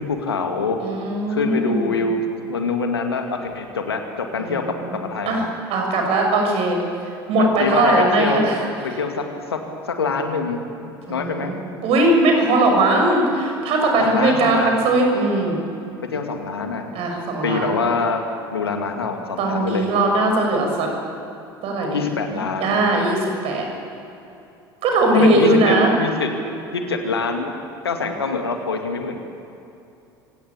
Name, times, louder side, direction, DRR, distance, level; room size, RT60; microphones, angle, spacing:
voice 1, 0.0-0.8 1.3-5.5 7.4-8.5 8.8-9.6 9.9-11.5 14.0-14.8 16.1-16.8 17.4-18.2 18.5-19.9 21.9-22.8 25.1-26.3 26.7-27.5 27.8-29.2, left 4 dB, 80° left, 4 dB, 2.2 m, -25 dB
voice 2, 0.8-2.0 4.4-4.9 5.3-6.8 7.3-8.6 11.1-15.6 16.9-17.8 19.4-20.9 21.6-23.7 24.8-25.9, right 2 dB, 50° right, 2 dB, 6.4 m, -19 dB
25.5 x 17.5 x 8.6 m, 2.8 s
figure-of-eight pair, 65°, 13 cm